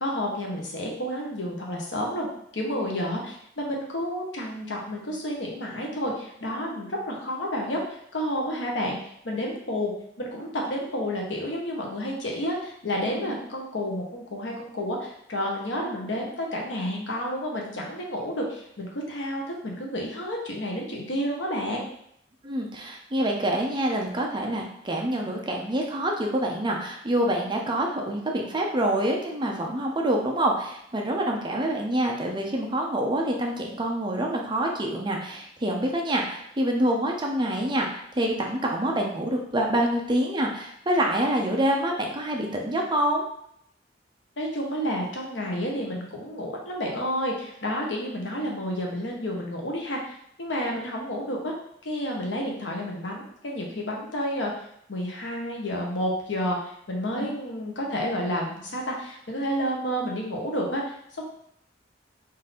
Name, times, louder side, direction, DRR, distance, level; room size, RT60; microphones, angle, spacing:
voice 1, 0.0-2.3 2.5-9.0 9.2-9.9 10.2-21.9 44.4-51.5 51.8-56.6 56.9-61.2, equal, 85° left, -1 dB, 1.0 m, -30 dB
voice 2, 22.4-43.2 57.2-57.3, right 1 dB, 25° right, 1 dB, 0.7 m, -26 dB
3.9 x 2.7 x 4.1 m, 0.71 s
head